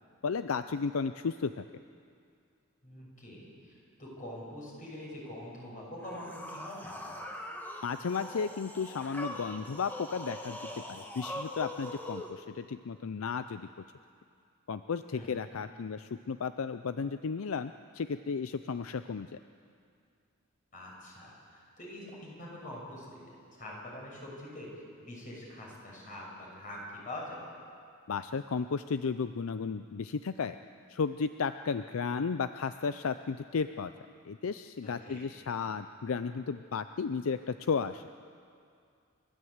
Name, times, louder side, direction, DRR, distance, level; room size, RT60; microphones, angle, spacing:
voice 1, 0.2-1.7 7.8-13.7 14.7-19.4 28.1-30.6 30.9-33.9 34.2-38.0, left 5 dB, 75° left, 11 dB, 0.5 m, -34 dB
voice 2, 2.8-7.1 15.1-15.4 20.7-23.3 23.6-24.7 25.0-27.4 34.8-35.2, left 1 dB, 40° left, -3 dB, 6.3 m, -44 dB
sound 1, 6.0-12.3, left 1 dB, 10° left, 1.8 m, -42 dB
29.0 x 13.0 x 8.0 m, 2.3 s
head